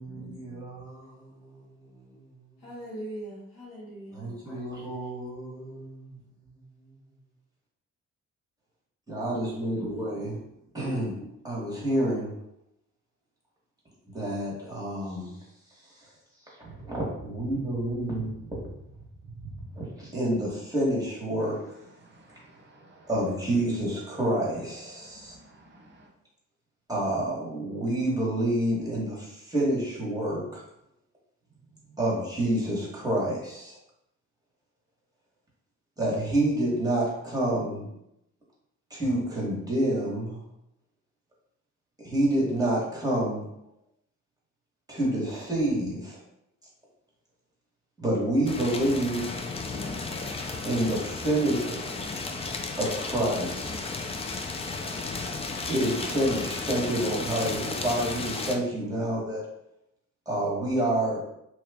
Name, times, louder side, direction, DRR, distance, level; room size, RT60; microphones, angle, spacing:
voice 1, 0.0-1.6 1.9-2.0 4.1-6.1 9.1-10.4 10.7-11.2 11.4-12.4 14.1-15.4 16.6-18.6 19.4-21.6 23.1-25.3 26.9-30.6 32.0-33.7 36.0-37.9 38.9-40.4 42.0-43.5 44.9-46.2 48.0-49.3 50.6-51.8 52.8-53.9 55.7-59.4 60.3-61.2, right 1 dB, 10° right, -5 dB, 1.1 m, -28 dB
voice 2, 2.6-4.6, right 1 dB, 55° left, -8 dB, 1.4 m, -41 dB
voice 3, 22.0-23.1 25.0-26.1, right 2 dB, 35° right, -1 dB, 0.7 m, -55 dB
sound 1, 48.5-58.6, left 3 dB, 20° left, 0.3 m, -34 dB
2.8 x 2.3 x 3.3 m, 0.82 s
cardioid pair, 90°, 30 cm